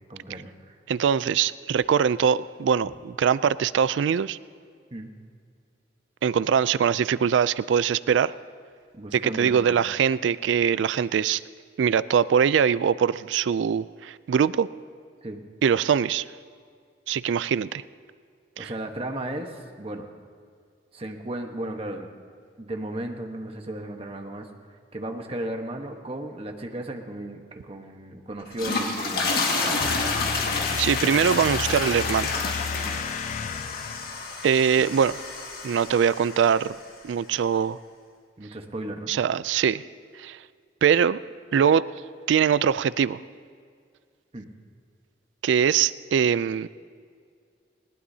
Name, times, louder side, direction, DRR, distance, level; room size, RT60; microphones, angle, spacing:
voice 1, 0.1-0.8 4.9-5.1 8.9-9.8 15.2-15.4 18.6-20.1 20.9-22.1 22.6-24.5 24.9-29.9 32.8-33.0 38.4-39.1 44.3-44.5, right 1 dB, 30° right, 4 dB, 1.1 m, -35 dB
voice 2, 0.9-4.4 6.2-8.3 9.1-11.4 11.8-14.7 15.6-16.2 17.1-17.8 18.6-18.7 30.8-32.3 34.4-35.2 35.6-36.8 37.0-37.8 39.1-39.8 40.2-40.4 40.8-41.2 41.5-41.8 42.3-43.2 45.4-46.7, right 7 dB, 90° right, 18 dB, 0.3 m, -22 dB
sound 1, 28.4-36.7, left 3 dB, 55° left, 1.8 m, -29 dB
sound 2, 29.8-34.5, left 7 dB, 40° left, 0.3 m, -32 dB
20.0 x 18.5 x 2.8 m, 2.1 s
head